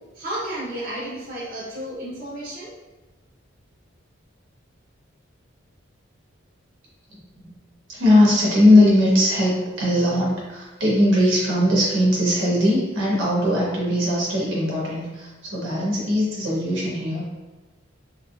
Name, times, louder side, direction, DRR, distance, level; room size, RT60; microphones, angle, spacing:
voice 1, 0.1-2.7, right 1 dB, 45° right, -9 dB, 1.0 m, -32 dB
voice 2, 7.1-7.5 7.9-17.2, left 1 dB, 70° right, -5 dB, 1.2 m, -20 dB
3.4 x 3.0 x 2.4 m, 1.1 s
head